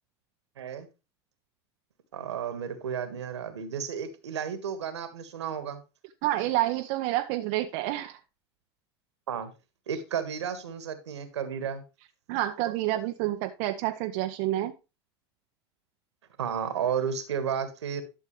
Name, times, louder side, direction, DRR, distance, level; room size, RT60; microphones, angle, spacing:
voice 1, 0.6-0.9 2.1-5.8 9.3-9.5 9.9-11.8 16.4-18.0, right 7 dB, 80° right, 10 dB, 1.6 m, -32 dB
voice 2, 6.2-8.2 12.3-14.7, right 15 dB, 60° right, 6 dB, 0.7 m, -28 dB
11.5 x 6.5 x 3.2 m, 0.28 s
hypercardioid pair, 85°, 14 cm